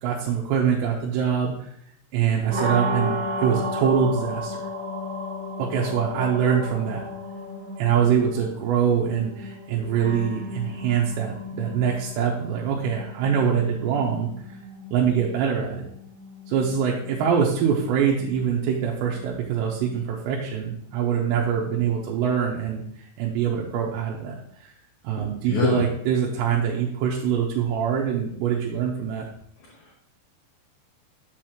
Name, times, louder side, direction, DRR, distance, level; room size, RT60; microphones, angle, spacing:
voice 1, 0.0-1.7 2.1-4.6 5.6-7.0 7.8-14.6 14.9-15.9 16.5-24.7 25.0-29.3, right 7 dB, 90° right, -3 dB, 3.0 m, -24 dB
sound 1, 2.5-22.3, left 1 dB, 55° right, 2.0 m, -35 dB
voice 2, 25.1-25.8 29.6-29.9, left 3 dB, 75° left, -3 dB, 1.8 m, -26 dB
6.8 x 6.4 x 2.9 m, 0.70 s
omnidirectional pair, 5.0 m